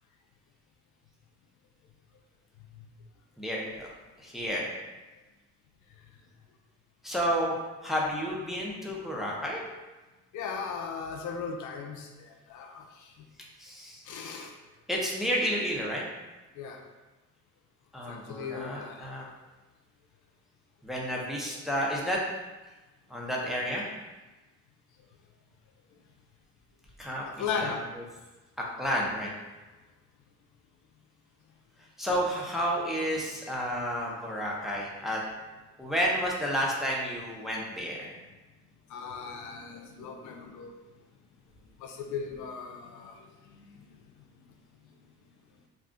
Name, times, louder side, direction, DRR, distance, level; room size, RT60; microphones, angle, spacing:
voice 1, 3.4-3.9 4.2-4.7 7.0-9.6 13.6-14.0 14.9-16.0 17.9-19.2 20.8-22.2 23.1-23.9 27.0-27.2 27.6-27.8 28.8-29.3 32.0-35.2 35.8-38.1, equal, ahead, -4 dB, 0.6 m, -31 dB
voice 2, 10.3-13.1 14.1-14.5 16.6-16.8 18.1-19.1 21.4-21.5 27.3-27.8 38.9-40.7 41.8-43.2 43.5-43.6, left 5 dB, 75° left, 3 dB, 0.5 m, -37 dB
2.4 x 2.3 x 3.7 m, 1.1 s
cardioid pair, 90°, 30 cm